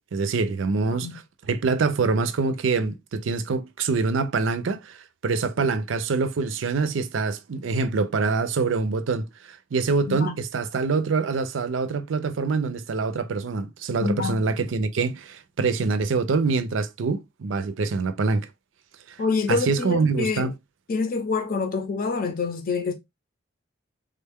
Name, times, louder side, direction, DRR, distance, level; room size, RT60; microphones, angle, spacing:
voice 1, 0.1-1.2 1.5-5.0 5.2-18.5 19.5-20.5, right 4 dB, 80° right, 0.5 m, -25 dB
voice 2, 14.0-14.4 19.2-20.5 20.9-22.9, left 4 dB, 50° left, 0.6 m, -26 dB
3.6 x 2.2 x 3.4 m
head